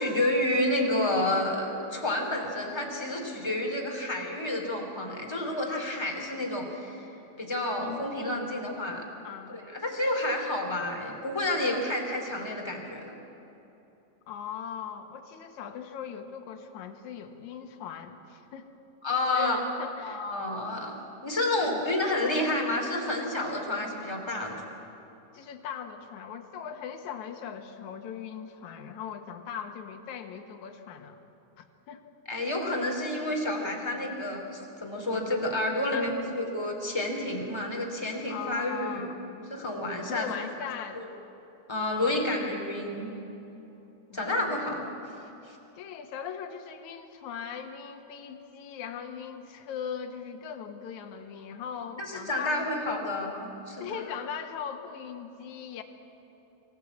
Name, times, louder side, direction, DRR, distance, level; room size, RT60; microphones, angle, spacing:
voice 1, 0.0-7.0 7.4-9.0 9.5-13.1 19.0-19.6 20.0-20.9 21.2-24.6 32.3-36.1 36.3-39.0 39.5-40.3 41.7-43.1 44.1-44.9 52.1-54.0, left 1 dB, 10° left, 0 dB, 2.5 m, -30 dB
voice 2, 7.8-8.6 9.2-9.6 14.3-18.7 19.3-20.3 21.7-21.8 25.3-31.2 31.6-32.0 35.9-36.1 38.3-39.4 40.1-41.0 41.9-42.2 44.1-44.6 45.7-52.6 53.8-55.8, left 7 dB, 60° left, 4 dB, 2.4 m, -39 dB
25.5 x 15.0 x 8.4 m, 3.0 s
omnidirectional pair, 4.3 m